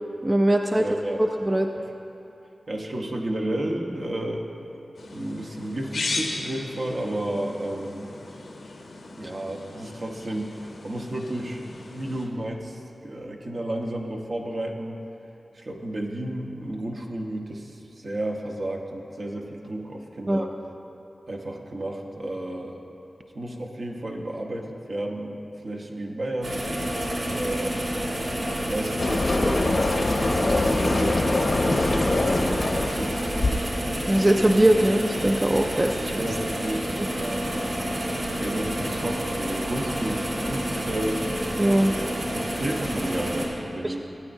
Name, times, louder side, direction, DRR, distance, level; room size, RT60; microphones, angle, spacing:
voice 1, 0.2-0.8 1.2-1.7 20.3-20.5 34.1-36.1 41.6-41.9 43.8-44.0, right 1 dB, 25° right, 4 dB, 0.5 m, -21 dB
voice 2, 0.7-1.2 1.8-1.9 2.7-4.4 5.1-8.1 9.1-15.0 15.5-20.5 21.3-22.8 23.3-27.8 28.4-29.8 30.3-33.3 36.2-36.8 37.1-37.8 38.4-41.4 41.8-42.1 42.3-44.0, right 1 dB, 65° right, 0 dB, 1.1 m, -32 dB
sound 1, 4.9-12.3, left 3 dB, 90° left, 0.9 m, -37 dB
sound 2, 26.4-43.5, equal, 85° right, 1.7 m, -29 dB
sound 3, 29.0-33.8, left 2 dB, 60° left, 0.8 m, -24 dB
17.0 x 8.8 x 2.7 m, 2.9 s
cardioid pair, 45°, 0 cm